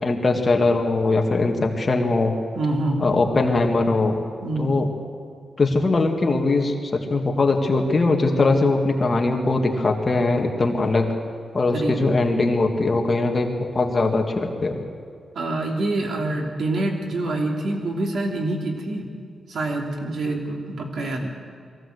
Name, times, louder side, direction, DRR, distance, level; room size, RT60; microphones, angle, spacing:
voice 1, 0.0-2.3 3.0-4.2 4.6-4.9 5.6-11.1 11.5-14.8, left 3 dB, 30° left, 2 dB, 2.0 m, -21 dB
voice 2, 2.5-3.2 4.4-4.8 11.7-12.1 15.3-19.1 19.5-21.3, right 2 dB, 70° right, 1 dB, 3.0 m, -26 dB
23.0 x 15.5 x 8.0 m, 2.3 s
wide cardioid pair, 140°, 0 cm